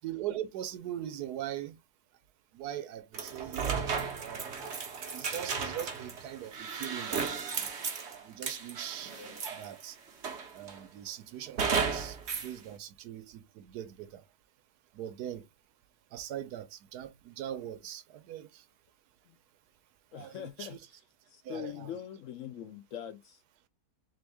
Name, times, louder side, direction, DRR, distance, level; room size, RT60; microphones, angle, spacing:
voice 1, 0.0-1.7 2.5-3.9 4.2-4.6 5.1-7.7 8.2-9.1 9.5-10.0 10.5-12.2 12.4-14.2 14.9-15.5 16.1-18.6 20.1-20.8 21.4-22.0, right 11 dB, 80° right, 1.2 m, -41 dB
sound 1, 3.1-9.8 10.2-10.8 11.6-12.5, right 5 dB, 50° right, 1.1 m, -34 dB
voice 2, 20.1-20.8 21.3-23.4, left 10 dB, 65° left, 0.8 m, -42 dB
3.6 x 3.5 x 3.4 m
omnidirectional pair, 1.7 m